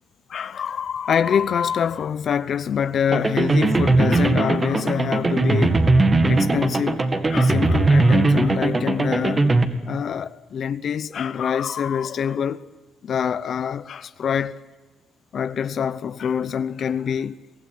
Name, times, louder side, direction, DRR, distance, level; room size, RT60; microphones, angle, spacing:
voice 1, 0.3-5.8 6.3-9.5 9.8-12.6 13.0-14.6 15.3-17.3, left 8 dB, 60° left, 0.7 m, -25 dB
sound 1, 3.1-9.7, right 2 dB, 30° right, 2.0 m, -19 dB
24.0 x 16.0 x 9.6 m
cardioid pair, 90°, 0 cm